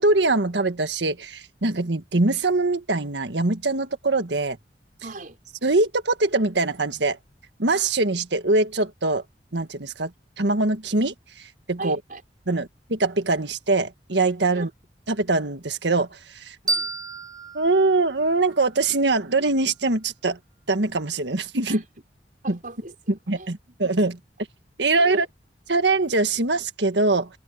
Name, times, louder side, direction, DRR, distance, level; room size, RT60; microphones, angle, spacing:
voice 1, 0.0-4.6 5.6-7.2 7.6-9.2 9.5-10.1 10.4-12.0 12.5-14.7 15.1-16.6 17.5-20.4 20.7-21.8 22.5-22.6 23.3-24.2 24.8-25.2 25.7-27.3, right 3 dB, 85° right, 1.7 m, -23 dB
voice 2, 5.0-5.4 11.8-12.2 14.5-14.7 16.6-16.9 21.7-21.8 22.4-23.8 25.0-25.3, right 2 dB, 50° right, 5.8 m, -38 dB
sound 1, 16.7-19.5, right 2 dB, 25° right, 1.6 m, -32 dB
head